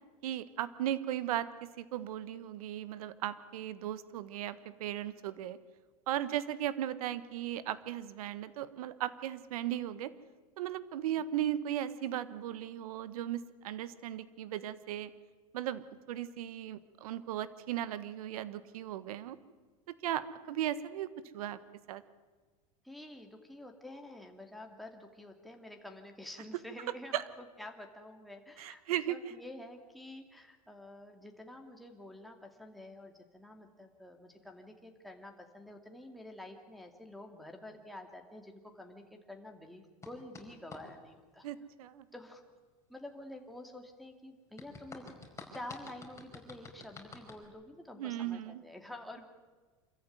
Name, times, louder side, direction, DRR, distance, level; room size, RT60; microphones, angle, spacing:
voice 1, 0.2-5.6 6.1-10.1 10.6-15.1 15.5-19.4 20.0-21.1 21.3-21.6 21.9-22.0 27.1-27.2 28.6-29.2 41.4-42.0 48.0-48.6, right 12 dB, 75° right, 15 dB, 1.4 m, -37 dB
voice 2, 22.8-41.5 42.1-42.4 42.9-45.1 45.5-49.2, left 1 dB, ahead, 2 dB, 2.6 m, -49 dB
sound 1, 40.0-40.8 44.6-47.5, left 4 dB, 15° left, 5.0 m, -49 dB
26.5 x 14.5 x 9.5 m, 1.4 s
hypercardioid pair, 105°, 19 cm